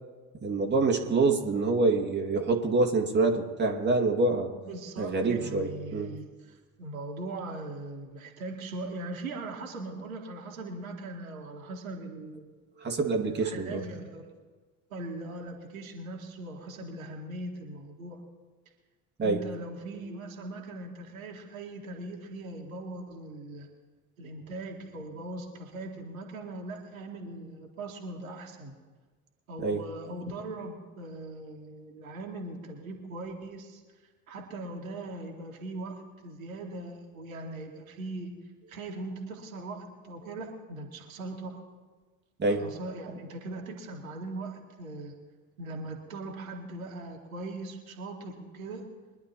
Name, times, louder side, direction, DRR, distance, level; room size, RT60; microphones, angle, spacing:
voice 1, 0.4-4.5 5.0-6.1 12.8-13.8 19.2-19.4 29.6-29.8 42.4-42.6, right 3 dB, 25° right, 2 dB, 2.1 m, -26 dB
voice 2, 4.6-12.5 13.2-14.3 14.9-18.2 19.2-23.7 24.2-28.7 29.5-33.8 34.3-38.3 38.7-41.6 42.5-45.1 45.6-48.9, right 2 dB, 75° right, 1 dB, 2.0 m, -40 dB
24.0 x 11.0 x 3.0 m, 1.4 s
figure-of-eight pair, 55°, 42 cm